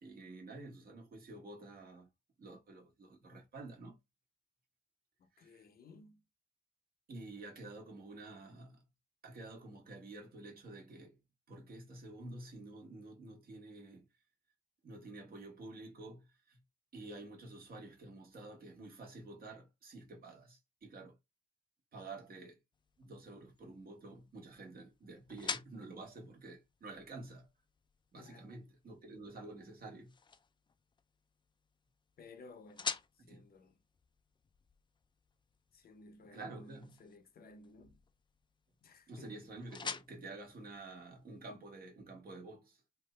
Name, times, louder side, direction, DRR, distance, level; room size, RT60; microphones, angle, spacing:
voice 1, 0.0-2.1 2.4-4.0 5.3-5.6 7.1-8.8 9.2-11.2 11.5-14.1 14.8-16.6 16.9-21.2 21.9-22.6 23.0-27.5 28.1-30.1 33.2-33.5 36.3-36.9 39.1-42.8, right 2 dB, 65° right, 1.5 m, -50 dB
voice 2, 5.2-6.2 28.2-28.5 32.2-33.8 35.7-38.0 38.8-39.5, left 3 dB, 70° left, 0.7 m, -57 dB
sound 1, 22.7-41.6, left 5 dB, 30° left, 0.3 m, -49 dB
3.0 x 2.5 x 3.2 m
cardioid pair, 100°, 16 cm